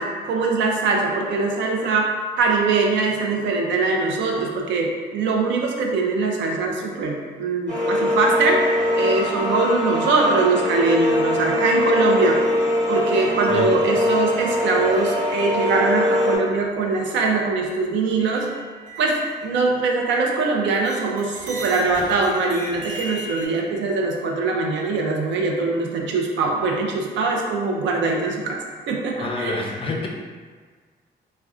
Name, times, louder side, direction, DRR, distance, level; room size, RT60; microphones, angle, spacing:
voice 1, 0.0-8.6 8.9-12.4 12.9-18.5 19.0-28.6 28.9-29.6, right 3 dB, 90° right, 0 dB, 0.4 m, -22 dB
sound 1, 7.7-16.4, left 1 dB, 65° right, 1.2 m, -22 dB
sound 2, 18.3-20.5 20.8-23.5, equal, 45° right, 0.5 m, -38 dB
voice 2, 29.2-30.1, left 2 dB, 30° left, 0 dB, 0.4 m, -27 dB
2.4 x 2.1 x 2.3 m, 1.5 s
cardioid pair, 105°, 19 cm